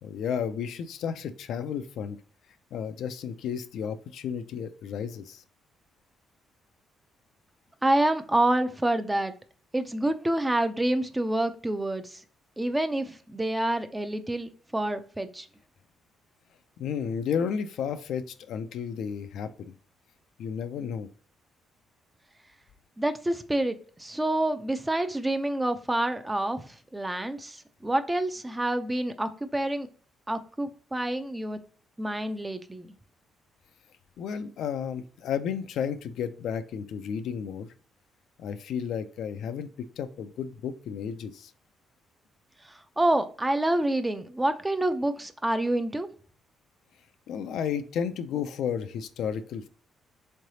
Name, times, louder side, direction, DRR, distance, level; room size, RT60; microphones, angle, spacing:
voice 1, 0.0-2.2 2.7-5.4 16.8-19.8 20.4-21.1 34.2-37.7 38.4-39.7 40.0-41.5 47.3-49.7, left 7 dB, 75° left, 9 dB, 0.4 m, -32 dB
voice 2, 7.8-9.3 9.7-12.2 12.6-15.5 23.0-29.9 30.3-31.6 32.0-32.9 43.0-46.1, right 1 dB, 15° right, 9 dB, 0.5 m, -27 dB
3.7 x 3.2 x 2.7 m, 0.42 s
cardioid pair, 90°, 0 cm